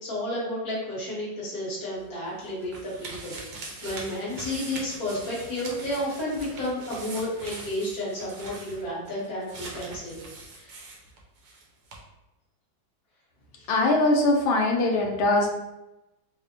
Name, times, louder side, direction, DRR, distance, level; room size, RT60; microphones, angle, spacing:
voice 1, 0.0-10.2 10.5-10.8 13.5-13.7, left 1 dB, 50° left, -6 dB, 1.6 m, -32 dB
sound 1, 2.0-11.6 11.9-12.0, right 3 dB, 70° right, 1.2 m, -42 dB
voice 2, 13.7-15.5, left 2 dB, 80° left, 1 dB, 1.4 m, -22 dB
4.8 x 2.0 x 2.8 m, 0.97 s
omnidirectional pair, 2.1 m